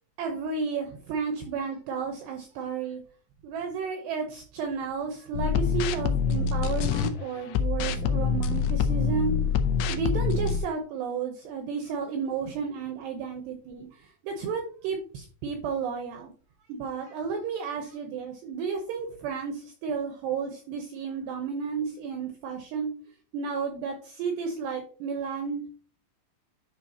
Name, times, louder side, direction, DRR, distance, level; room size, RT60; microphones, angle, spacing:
voice 1, 0.2-3.0 3.4-9.3 9.9-16.3 16.7-22.9 23.3-25.7, right 5 dB, 80° right, 4 dB, 2.5 m, -32 dB
sound 1, 5.3-7.1 7.5-10.6, left 6 dB, 80° left, 2.9 m, -25 dB
9.9 x 5.5 x 2.8 m, 0.42 s
omnidirectional pair, 5.9 m